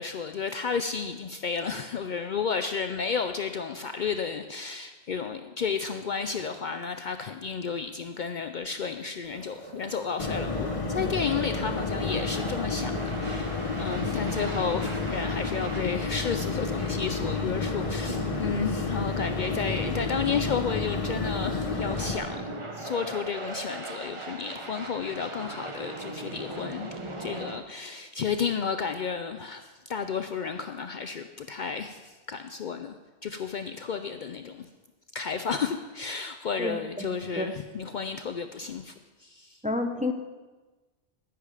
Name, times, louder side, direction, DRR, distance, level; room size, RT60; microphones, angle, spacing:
voice 1, 0.0-33.0 33.2-34.7 35.1-38.9 39.2-39.6, left 6 dB, 55° left, 8 dB, 0.6 m, -32 dB
sound 1, 9.2-27.6, right 2 dB, 30° right, 1.0 m, -38 dB
sound 2, 10.2-22.2, left 4 dB, 35° left, 0.9 m, -31 dB
voice 2, 36.6-37.1 37.4-37.5 39.6-40.1, left 2 dB, 10° right, 5 dB, 0.6 m, -29 dB
10.5 x 10.0 x 4.9 m, 1.2 s
omnidirectional pair, 1.1 m